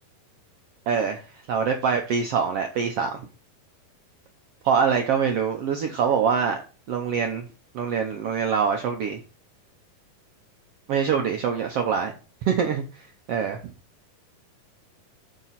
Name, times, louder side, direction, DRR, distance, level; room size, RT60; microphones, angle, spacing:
voice 1, 0.9-1.2 1.5-3.2 4.6-6.6 6.9-7.4 7.7-9.2 10.9-12.1 12.4-13.6, right 6 dB, 80° right, 1.4 m, -24 dB
8.4 x 4.2 x 5.7 m
omnidirectional pair, 3.9 m